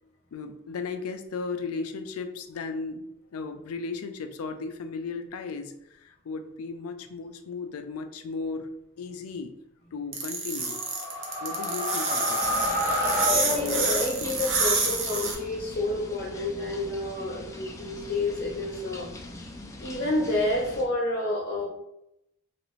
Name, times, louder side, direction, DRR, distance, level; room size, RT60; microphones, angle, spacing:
voice 1, 0.3-8.7 9.0-9.5 9.9-10.8 11.4-12.6, left 4 dB, 85° left, 7 dB, 0.4 m, -35 dB
sound 1, 10.1-15.3, right 4 dB, 60° right, 0.7 m, -28 dB
sound 2, 10.6-14.4, left 1 dB, 10° right, 0.9 m, -29 dB
sound 3, 12.4-20.9, left 2 dB, 15° left, 0.3 m, -42 dB
voice 2, 13.2-19.1 19.8-21.7, left 2 dB, 50° left, -4 dB, 0.7 m, -29 dB
3.2 x 2.5 x 3.1 m, 0.83 s
head